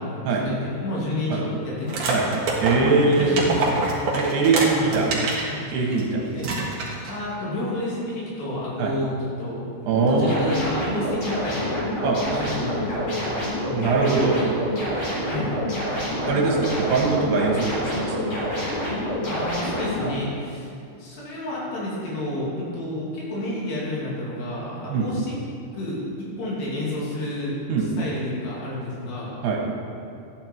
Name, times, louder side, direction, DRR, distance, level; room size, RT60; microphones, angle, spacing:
voice 1, 0.0-2.3 2.7-3.7 4.5-5.1 5.5-5.6 6.3-6.7 7.1-9.7 10.0-11.7 12.3-13.1 15.2-15.5 19.2-20.7 21.0-25.3 25.7-29.3, left 1 dB, 80° left, -6 dB, 4.9 m, -30 dB
sound 1, 1.9-5.5 5.9-6.0 6.4-7.2, right 3 dB, 55° right, 2.3 m, -26 dB
voice 2, 2.6-3.4 4.2-5.1 5.7-6.2 8.8-8.9 9.9-10.6 12.0-12.2 13.7-14.4 16.2-18.2 24.9-25.1 27.7-27.9 29.4-29.6, right 4 dB, 80° right, -1 dB, 3.4 m, -22 dB
sound 2, 9.9-20.1, left 1 dB, 45° left, 4.6 m, -27 dB
13.0 x 9.5 x 4.6 m, 2.5 s
omnidirectional pair, 4.8 m